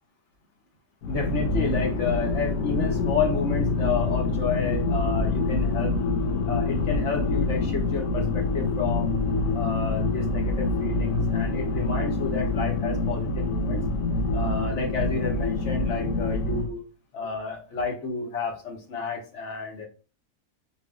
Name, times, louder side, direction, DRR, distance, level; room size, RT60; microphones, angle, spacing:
sound 1, 1.0-16.7, left 3 dB, 80° left, 1.1 m, -26 dB
voice 1, 1.1-6.0 6.5-9.1 9.5-13.8 14.3-16.8 17.1-19.9, left 4 dB, 60° left, 1 dB, 1.5 m, -30 dB
4.3 x 3.1 x 3.7 m, 0.35 s
omnidirectional pair, 1.4 m